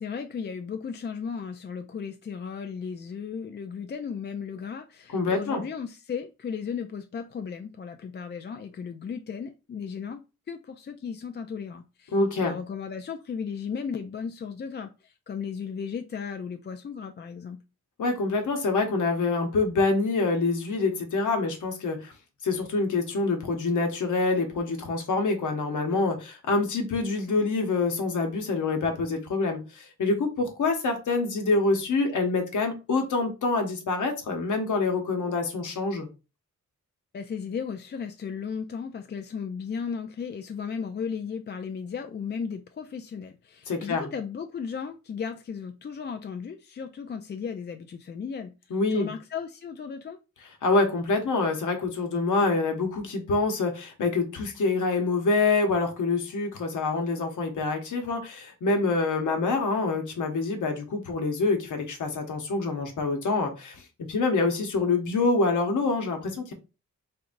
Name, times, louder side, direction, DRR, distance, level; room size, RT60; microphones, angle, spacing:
voice 1, 0.0-17.6 37.1-50.2, left 6 dB, 35° left, 0.4 m, -35 dB
voice 2, 5.1-5.6 12.1-12.5 18.0-22.1 22.4-36.1 43.7-44.1 48.7-49.1 50.6-63.8 64.1-66.5, left 3 dB, 85° left, 1.0 m, -26 dB
3.7 x 3.2 x 2.5 m
wide cardioid pair, 90°, 30 cm